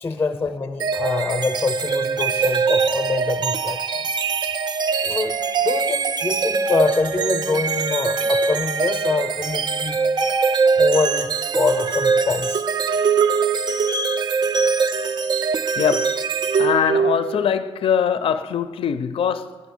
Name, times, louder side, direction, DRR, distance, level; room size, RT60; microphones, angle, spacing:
voice 1, 0.0-4.1 4.4-4.5 5.0-5.3 5.6-10.0 10.8-11.3 11.5-12.6, left 4 dB, 25° left, 0.6 m, -25 dB
sound 1, 0.8-17.5, right 5 dB, 50° right, 0.4 m, -22 dB
voice 2, 15.8-16.1 16.6-19.6, left 8 dB, 70° left, 0.4 m, -22 dB
9.5 x 6.0 x 7.1 m
wide cardioid pair, 150°, 10 cm